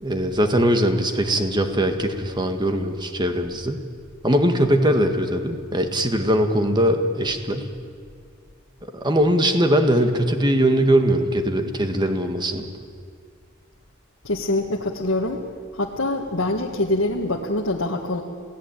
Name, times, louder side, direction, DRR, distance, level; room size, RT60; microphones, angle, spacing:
voice 1, 0.0-3.8 4.2-7.7 8.9-12.7, equal, 20° right, 6 dB, 1.8 m, -21 dB
voice 2, 14.2-15.4 15.7-18.2, left 2 dB, 75° left, 0 dB, 1.8 m, -24 dB
27.0 x 17.5 x 9.1 m, 2.1 s
head